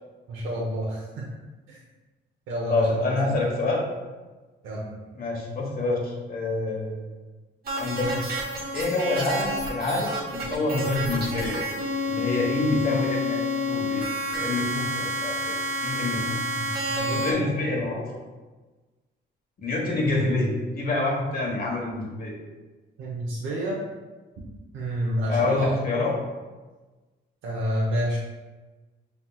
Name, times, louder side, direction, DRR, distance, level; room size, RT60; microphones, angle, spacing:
voice 1, 0.3-1.3 1.7-1.8 2.5-3.4 4.6-4.9 16.3-17.5 23.0-23.8 24.7-25.7 27.4-28.2, equal, 80° right, -4 dB, 0.9 m, -29 dB
voice 2, 2.7-3.9 5.1-7.1 7.8-8.1 8.7-11.6 12.0-16.4 17.1-18.2 19.6-22.4 25.3-26.1, left 2 dB, 45° left, -1 dB, 1.3 m, -27 dB
sound 1, 7.6-17.3, left 1 dB, 50° right, 1.2 m, -29 dB
5.7 x 3.5 x 2.4 m, 1.3 s
cardioid pair, 90°, 20 cm